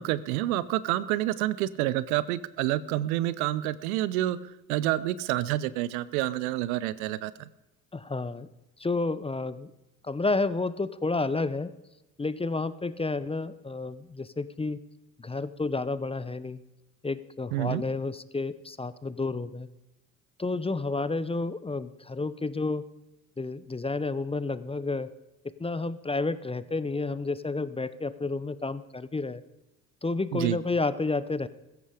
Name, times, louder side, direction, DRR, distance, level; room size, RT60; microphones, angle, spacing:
voice 1, 0.0-4.4 4.7-7.5 17.5-17.8 30.3-30.6, right 15 dB, 75° right, 18 dB, 0.8 m, -28 dB
voice 2, 7.9-8.5 8.8-9.7 10.0-11.7 12.2-14.8 15.2-16.6 17.0-19.7 20.4-22.8 23.4-25.1 25.6-29.4 30.0-31.5, left 3 dB, 15° left, 16 dB, 0.7 m, -30 dB
15.5 x 14.5 x 5.0 m, 0.99 s
hypercardioid pair, 55°, 43 cm